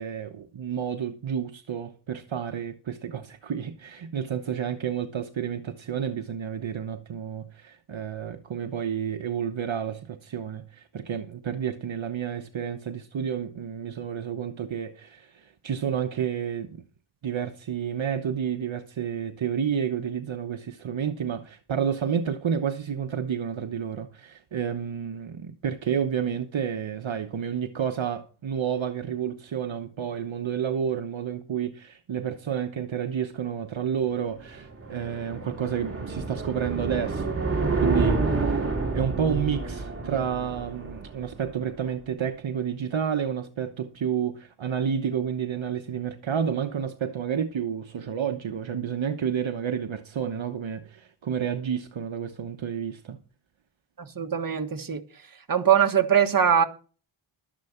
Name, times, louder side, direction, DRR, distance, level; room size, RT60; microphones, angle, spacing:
voice 1, 0.0-16.7 17.2-53.2, right 8 dB, 65° right, 1.0 m, -30 dB
sound 1, 34.2-41.5, right 3 dB, 25° right, 2.5 m, -29 dB
voice 2, 54.0-55.0 55.5-56.6, right 8 dB, 45° right, 1.5 m, -22 dB
12.5 x 10.0 x 4.4 m
wide cardioid pair, 130°, 49 cm